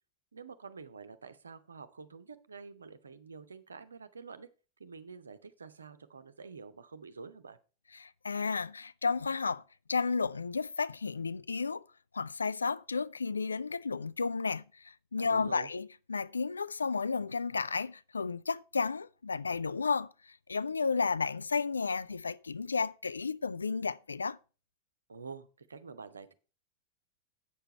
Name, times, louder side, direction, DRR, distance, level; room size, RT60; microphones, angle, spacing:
voice 1, 0.3-4.5 4.8-7.6 15.2-15.7 25.1-26.3, right 5 dB, 75° right, 0.8 m, -48 dB
voice 2, 7.9-9.6 9.9-11.8 12.1-24.4, left 4 dB, 75° left, 0.3 m, -33 dB
8.6 x 6.8 x 4.3 m
figure-of-eight pair, 90°, 0 cm